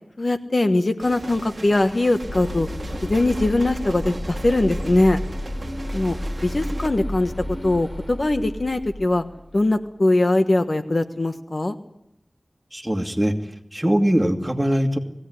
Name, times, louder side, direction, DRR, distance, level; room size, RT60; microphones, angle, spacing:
voice 1, 0.2-2.7 3.0-5.2 5.9-6.2 6.4-7.3 7.6-9.2 9.5-11.8, left 2 dB, 55° left, 8 dB, 1.3 m, -21 dB
sound 1, 1.0-6.9, right 2 dB, 60° right, 1.4 m, -38 dB
sound 2, 2.2-9.6, left 1 dB, 20° left, 3.1 m, -32 dB
voice 2, 12.7-13.3 13.7-15.0, equal, 15° right, 3 dB, 2.5 m, -21 dB
20.0 x 16.5 x 9.8 m, 0.83 s
wide cardioid pair, 50°, 0 cm